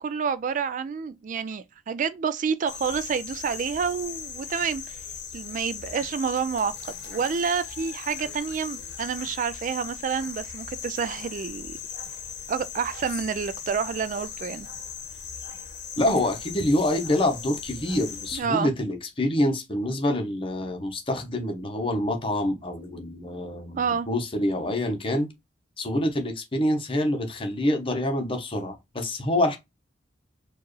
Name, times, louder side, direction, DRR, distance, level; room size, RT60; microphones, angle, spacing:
voice 1, 0.0-5.0 5.3-11.8 12.5-14.7 18.3-18.7 23.7-24.1, right 6 dB, 45° right, 0.3 m, -29 dB
sound 1, 2.7-18.4, left 7 dB, 65° left, 0.9 m, -38 dB
voice 2, 16.0-25.3 25.8-29.6, left 1 dB, 30° left, 1.0 m, -26 dB
4.4 x 2.5 x 3.1 m
head